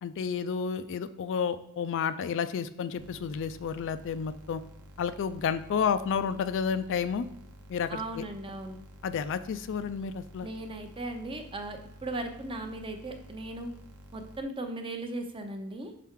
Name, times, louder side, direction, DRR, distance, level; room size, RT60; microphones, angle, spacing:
voice 1, 0.0-4.6 5.0-7.3 7.7-8.2 9.0-10.5, left 6 dB, 55° left, 12 dB, 0.3 m, -31 dB
sound 1, 3.0-14.4, equal, 90° right, 1.0 m, -51 dB
voice 2, 7.9-8.8 10.4-13.7 14.1-15.9, right 2 dB, 25° right, 5 dB, 0.6 m, -37 dB
5.8 x 5.4 x 3.6 m, 0.80 s
head